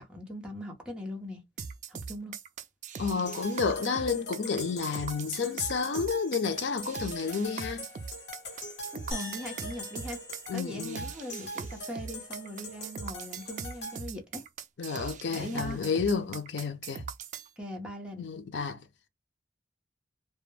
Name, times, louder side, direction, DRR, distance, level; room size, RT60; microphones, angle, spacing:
voice 1, 0.0-1.4 1.9-2.3 8.9-10.2 10.5-14.4 15.3-15.8 17.6-18.2, equal, 5° right, 0.7 m, -40 dB
sound 1, 1.6-17.5, right 6 dB, 45° right, 0.3 m, -41 dB
voice 2, 3.0-7.9 10.5-11.1 14.8-17.0 18.2-18.8, left 5 dB, 85° left, 0.5 m, -31 dB
sound 2, 3.3-14.0, left 1 dB, 60° left, 0.8 m, -43 dB
sound 3, 9.1-11.5, left 1 dB, 25° left, 1.2 m, -43 dB
2.2 x 2.1 x 3.1 m
head